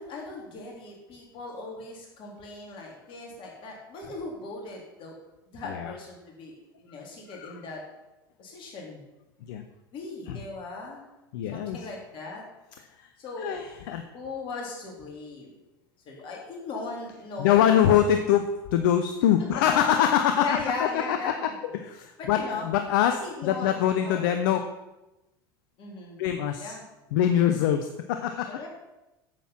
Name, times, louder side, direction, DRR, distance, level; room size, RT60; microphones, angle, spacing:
voice 1, 0.0-5.2 5.5-7.8 8.4-9.0 9.9-11.0 11.5-12.4 13.2-13.6 14.1-15.5 16.1-17.8 19.6-19.7 20.4-21.6 22.2-22.7 23.2-24.6 25.8-26.2 26.6-26.8 28.5-28.7, left 3 dB, 45° left, -1 dB, 3.7 m, -38 dB
voice 2, 7.3-7.6 9.4-9.6 10.3-10.4 11.3-11.8 13.0-13.1 13.4-14.0 17.4-20.5 20.8-21.2 21.4-24.6 26.2-26.7 27.1-28.5, left 10 dB, 65° left, 7 dB, 0.7 m, -24 dB
9.2 x 7.7 x 5.9 m, 0.99 s
hypercardioid pair, 75°, 12 cm